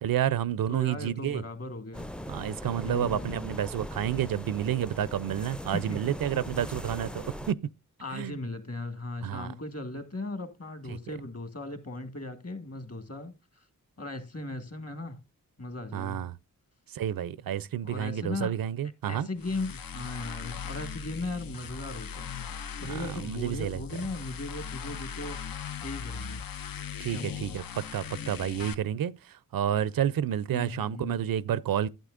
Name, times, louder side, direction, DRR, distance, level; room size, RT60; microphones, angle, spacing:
voice 1, 0.0-1.4 2.3-7.6 8.1-8.4 9.2-9.5 15.9-16.4 16.9-19.3 22.9-23.8 27.0-31.9, right 10 dB, 80° right, 0.5 m, -30 dB
voice 2, 0.7-2.1 2.8-3.5 5.7-6.0 8.0-13.6 14.0-15.2 15.6-16.3 17.8-18.6 19.1-25.4 25.8-26.4 27.1-27.6 30.5-31.3, left 2 dB, 45° left, 1.7 m, -38 dB
sound 1, 1.9-7.5, equal, 5° left, 0.4 m, -40 dB
sound 2, 19.4-28.7, left 7 dB, 80° left, 0.6 m, -39 dB
12.0 x 9.0 x 2.5 m
cardioid pair, 50°, 34 cm